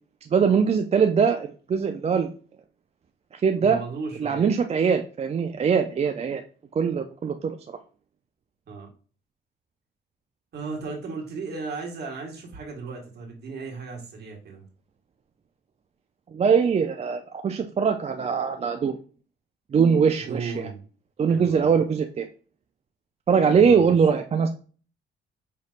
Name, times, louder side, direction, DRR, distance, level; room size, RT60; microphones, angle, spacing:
voice 1, 0.2-2.3 3.3-3.8 4.2-6.4 6.8-7.6 16.3-19.0 19.7-20.7 21.2-22.3 23.3-24.5, right 6 dB, 30° right, 6 dB, 0.4 m, -22 dB
voice 2, 3.5-4.5 8.7-8.9 10.5-14.6 20.2-20.8 21.3-21.7 23.5-23.9, right 4 dB, 55° right, 0 dB, 1.6 m, -35 dB
5.6 x 3.2 x 2.4 m, 0.39 s
cardioid pair, 90°, 20 cm